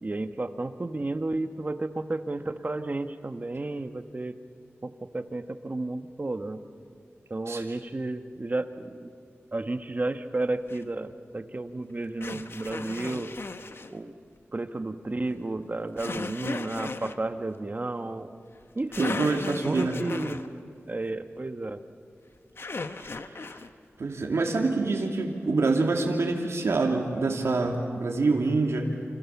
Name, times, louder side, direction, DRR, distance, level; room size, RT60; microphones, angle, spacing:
voice 1, 0.0-4.4 4.8-6.6 7.3-9.1 9.5-13.3 13.9-14.1 14.5-18.4 18.7-19.2 19.6-20.4 20.9-21.8, right 2 dB, 35° right, 8 dB, 1.3 m, -32 dB
voice 2, 7.5-7.8 19.0-20.0 23.1-23.4 24.0-28.9, right 3 dB, 80° right, 0 dB, 2.7 m, -26 dB
sound 1, 10.7-10.8 12.2-13.9 16.0-17.2 18.6-18.7 18.9-20.5 22.6-23.7, left 3 dB, 55° left, 1.2 m, -36 dB
29.0 x 27.0 x 7.2 m, 2.3 s
wide cardioid pair, 85°, 5 cm